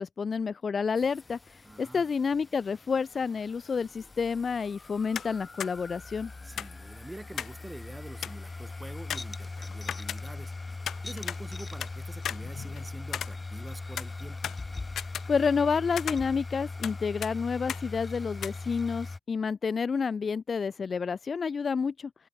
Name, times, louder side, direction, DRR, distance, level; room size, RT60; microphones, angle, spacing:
voice 1, 0.0-1.4 1.8-6.3 15.3-22.1, left 5 dB, 60° left, 1.0 m, -29 dB
sound 1, 1.0-19.2, left 3 dB, 40° left, 5.3 m, -40 dB
voice 2, 1.6-2.1 6.4-14.5, right 1 dB, 20° right, 6.4 m, -46 dB
sound 2, 5.1-5.3 5.6-5.7 6.6-7.6 7.9-8.0 8.2-8.5 9.1-10.5 10.9-11.9 12.2-13.7 14.0-15.7 16.0-17.0 17.2-17.3 17.7-17.9 18.4-18.5, left 9 dB, 85° left, 2.1 m, -36 dB
open air
supercardioid pair, 45°, 0 cm